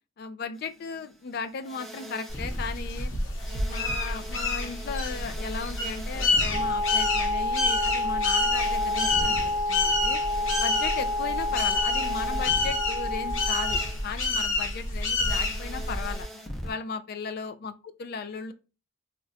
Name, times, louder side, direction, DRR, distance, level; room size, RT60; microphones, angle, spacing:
voice 1, 0.2-3.1 3.5-10.2 10.6-16.3 16.6-18.5, left 5 dB, 50° left, 0.4 m, -36 dB
sound 1, 0.6-2.8 3.3-9.7 10.2-12.9 13.6-14.2 15.3-16.7, equal, ahead, 0.7 m, -42 dB
sound 2, 2.3-16.2, left 2 dB, 65° left, 0.9 m, -28 dB
Wind instrument woodwind instrument, 6.5-13.9, left 2 dB, 35° right, 0.4 m, -29 dB
2.5 x 2.2 x 3.9 m
head